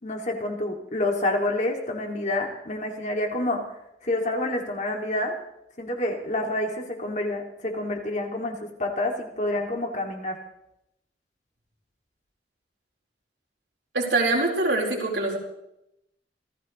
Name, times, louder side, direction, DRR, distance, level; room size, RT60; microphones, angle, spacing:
voice 1, 0.0-3.6 4.0-5.4 5.8-10.4, left 1 dB, 40° left, 2 dB, 2.6 m, -28 dB
voice 2, 13.9-15.4, right 2 dB, 75° right, 0 dB, 4.4 m, -24 dB
27.5 x 15.5 x 3.3 m, 0.84 s
head